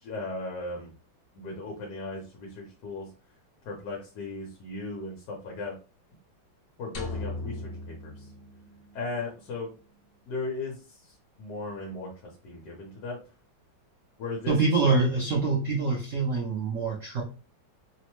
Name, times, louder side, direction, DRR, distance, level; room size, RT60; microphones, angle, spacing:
voice 1, 0.0-0.9 1.3-3.1 3.6-5.8 6.8-8.3 8.9-9.7 10.3-13.2 14.2-14.5 14.9-15.0, left 3 dB, 65° left, -1 dB, 1.2 m, -37 dB
sound 1, 6.9-9.2, left 2 dB, 85° left, 0.6 m, -38 dB
voice 2, 14.5-17.2, right 4 dB, 85° right, -1 dB, 0.6 m, -25 dB
3.2 x 2.1 x 3.0 m, 0.35 s
omnidirectional pair, 2.1 m